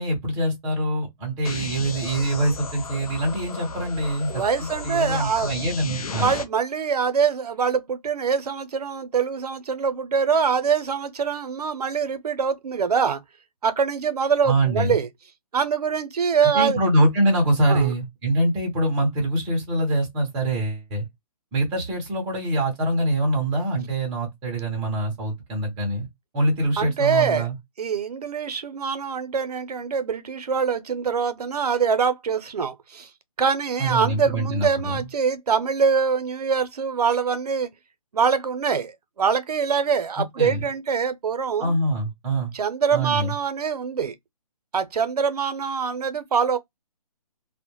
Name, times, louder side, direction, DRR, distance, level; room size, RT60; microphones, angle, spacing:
voice 1, 0.0-6.3 14.4-15.0 16.4-21.0 21.5-26.1 26.3-27.6 33.8-35.0 40.4-40.6 41.6-42.5 42.9-43.4, right 1 dB, 10° right, 0.5 m, -24 dB
sound 1, 1.4-6.4, left 4 dB, 70° left, 0.6 m, -34 dB
voice 2, 4.3-5.6 6.2-13.2 13.6-15.1 15.5-16.8 17.7-17.9 26.8-27.5 27.8-33.1 33.4-37.7 38.1-41.7 42.5-44.1 44.7-46.6, right 6 dB, 90° right, 0.6 m, -24 dB
2.1 x 2.0 x 2.9 m
hypercardioid pair, 160°, 19 cm